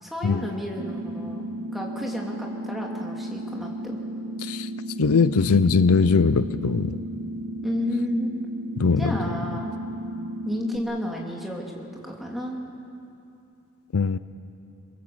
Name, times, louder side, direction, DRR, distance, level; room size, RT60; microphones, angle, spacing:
voice 1, 0.0-1.4 1.7-4.0 7.6-8.3 9.0-9.8 10.4-12.6, equal, ahead, -1 dB, 2.7 m, -31 dB
sound 1, 0.8-10.8, right 1 dB, 45° right, 1.1 m, -34 dB
voice 2, 5.0-7.0 8.8-9.1 13.9-14.2, left 5 dB, 75° left, 14 dB, 0.6 m, -20 dB
23.0 x 22.5 x 7.8 m, 2.7 s
head